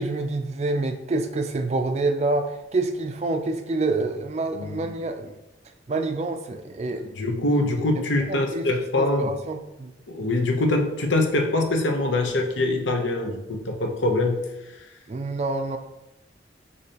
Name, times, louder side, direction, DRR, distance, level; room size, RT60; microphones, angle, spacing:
voice 1, 0.0-5.4 5.9-7.1 8.0-8.7 9.0-9.9 15.1-15.8, right 2 dB, 35° right, 6 dB, 0.3 m, -27 dB
voice 2, 7.1-9.3 10.1-14.4, left 2 dB, 90° left, 3 dB, 0.7 m, -24 dB
6.4 x 2.7 x 2.8 m, 0.94 s
head